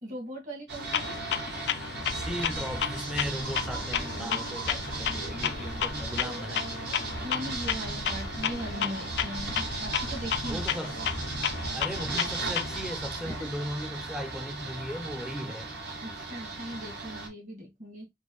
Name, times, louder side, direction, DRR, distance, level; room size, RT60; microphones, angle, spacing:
voice 1, 0.0-1.2 7.2-10.6 13.2-13.5 16.0-18.1, equal, 45° right, 1.8 m, -39 dB
sound 1, 0.7-17.3, right 3 dB, 65° right, 1.5 m, -37 dB
Clock, 0.9-12.9, left 9 dB, 65° left, 0.3 m, -33 dB
sound 2, 2.0-11.8, right 1 dB, 90° right, 1.0 m, -40 dB
voice 2, 2.1-7.1 10.5-11.0 11.7-15.7, equal, 5° right, 0.5 m, -37 dB
4.4 x 2.5 x 3.0 m
head